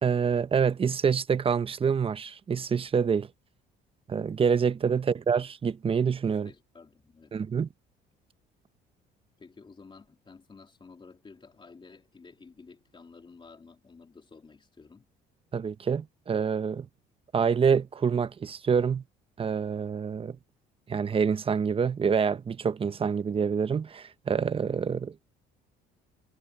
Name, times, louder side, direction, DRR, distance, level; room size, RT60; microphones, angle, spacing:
voice 1, 0.0-3.3 4.1-6.5 7.3-7.7 15.5-16.9 17.3-19.0 19.4-20.4 20.9-25.1, right 6 dB, 30° right, 0.9 m, -26 dB
voice 2, 6.3-7.4 9.4-15.1, left 4 dB, 25° left, 3.3 m, -52 dB
cardioid pair, 95°, 19 cm